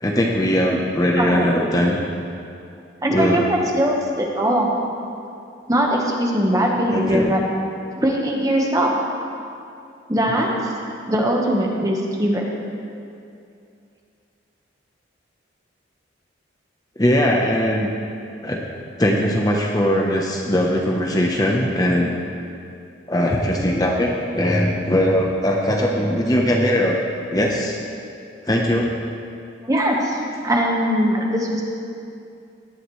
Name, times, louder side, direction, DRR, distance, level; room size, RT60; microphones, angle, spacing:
voice 1, 0.0-2.0 3.1-3.4 6.9-7.3 17.0-17.9 18.4-18.6 19.0-22.1 23.1-27.0 27.3-27.8 28.5-28.9, equal, 20° left, -1 dB, 0.9 m, -20 dB
voice 2, 1.2-1.5 3.0-4.7 5.7-7.4 8.0-8.9 10.1-10.5 11.0-12.4 29.6-30.2 30.4-31.6, equal, 20° right, -1 dB, 1.2 m, -20 dB
17.5 x 11.5 x 3.2 m, 2.5 s
head